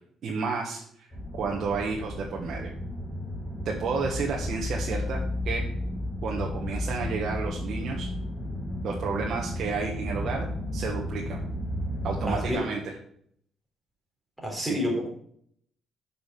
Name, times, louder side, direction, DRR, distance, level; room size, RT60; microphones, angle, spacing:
voice 1, 0.2-1.1 1.3-2.7 3.6-5.2 5.4-5.7 6.2-8.1 8.8-10.5 10.7-11.4 12.0-12.9 14.6-14.8, right 4 dB, 60° right, -1 dB, 1.3 m, -31 dB
sound 1, 1.1-12.5, left 1 dB, 30° left, 3.9 m, -33 dB
voice 2, 12.2-12.7 14.4-15.1, equal, 5° right, -1 dB, 3.5 m, -29 dB
6.2 x 5.6 x 6.9 m, 0.66 s
cardioid pair, 90°, 0 cm